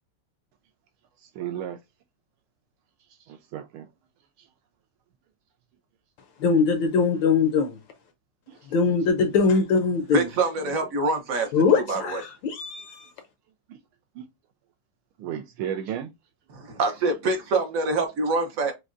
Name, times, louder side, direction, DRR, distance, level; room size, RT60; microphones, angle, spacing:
voice 1, 1.2-1.8 3.3-3.9 8.5-8.6 14.2-14.3 15.2-16.1, right 10 dB, 80° right, 1.4 m, -33 dB
voice 2, 6.4-7.8 8.7-10.3 11.5-13.1, left 5 dB, 70° left, 1.2 m, -22 dB
voice 3, 10.1-11.5 11.7-12.2 16.5-18.7, right 3 dB, 60° right, 0.9 m, -25 dB
6.2 x 2.2 x 2.5 m
omnidirectional pair, 2.4 m